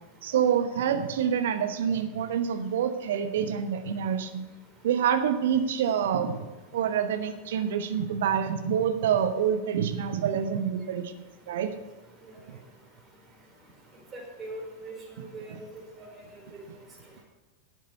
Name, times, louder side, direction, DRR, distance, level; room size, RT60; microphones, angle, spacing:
voice 1, 0.2-4.5 4.8-6.5 6.7-11.1 11.5-11.7 12.5-12.6 15.5-15.6, right 8 dB, 60° right, 9 dB, 1.0 m, -27 dB
voice 2, 14.1-15.5 16.0-16.1, right 2 dB, 25° right, -1 dB, 4.3 m, -41 dB
11.0 x 8.2 x 6.6 m, 1.2 s
figure-of-eight pair, 90°, 0 cm